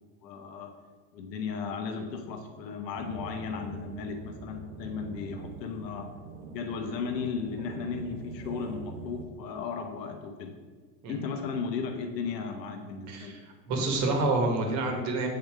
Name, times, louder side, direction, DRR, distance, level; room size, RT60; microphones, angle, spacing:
voice 1, 0.2-0.7 1.1-6.1 6.5-10.5 11.1-13.4, left 5 dB, 85° left, 4 dB, 0.9 m, -35 dB
sound 1, 3.0-9.2, right 4 dB, 65° right, 0.9 m, -44 dB
voice 2, 13.1-13.4 13.7-15.3, right 2 dB, 35° right, 3 dB, 1.1 m, -27 dB
7.8 x 3.8 x 3.4 m, 1.5 s
supercardioid pair, 140°, 48 cm